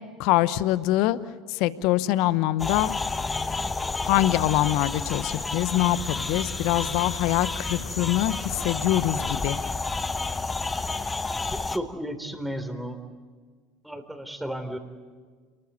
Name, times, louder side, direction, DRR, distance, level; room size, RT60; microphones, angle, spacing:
voice 1, 0.2-1.2 1.5-2.9 4.0-9.6, left 15 dB, 65° left, 16 dB, 0.9 m, -24 dB
sound 1, 2.6-11.8, left 3 dB, 20° left, 1.2 m, -30 dB
voice 2, 11.5-13.0 13.8-14.8, equal, 5° right, 7 dB, 3.6 m, -33 dB
28.5 x 20.5 x 8.1 m, 1.5 s
hypercardioid pair, 75°, 0 cm